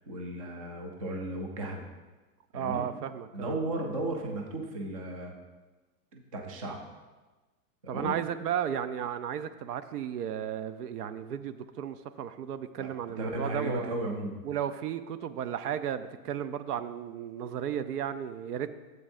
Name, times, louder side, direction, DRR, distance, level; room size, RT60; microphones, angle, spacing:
voice 1, 0.1-1.9 2.5-2.9 3.3-5.3 6.1-6.8 7.8-8.2 12.8-12.9 13.2-14.4, right 1 dB, 25° right, 2 dB, 0.4 m, -35 dB
voice 2, 2.5-3.6 7.9-13.9 14.4-18.7, right 9 dB, 70° right, 12 dB, 0.7 m, -34 dB
12.5 x 7.8 x 2.6 m, 1.2 s
supercardioid pair, 160°, 48 cm